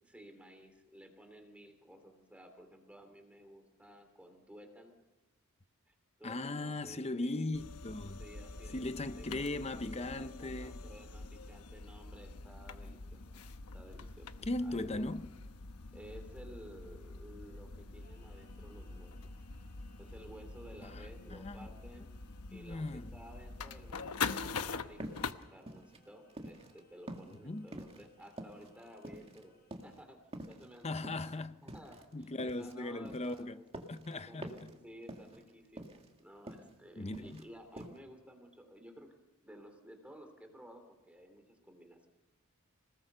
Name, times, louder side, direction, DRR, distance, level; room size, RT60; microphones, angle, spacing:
voice 1, 0.0-4.9 5.9-7.5 8.2-13.2 13.7-14.3 14.6-15.1 15.9-19.1 20.0-22.1 22.5-30.2 30.5-30.9 31.6-33.7 34.1-39.1 39.4-42.1, equal, 5° right, 3.0 m, -54 dB
voice 2, 6.2-8.2 8.7-10.8 14.4-15.3 20.8-21.7 22.5-23.1 27.4-27.7 30.8-31.5 32.1-33.6 33.9-34.5 37.0-37.4, left 2 dB, 30° left, 0.7 m, -38 dB
sound 1, 7.5-25.3, left 4 dB, 90° left, 1.0 m, -44 dB
Singing, 18.0-30.1, left 2 dB, 45° left, 7.3 m, -70 dB
sound 2, 25.0-26.8 27.1-29.4 29.7-30.0 30.3-32.7 33.1-34.1 34.4-34.8 35.0-35.5 35.8-36.7 37.0-37.5 37.8-38.0, right 1 dB, 25° right, 2.0 m, -47 dB
26.5 x 19.0 x 6.8 m
head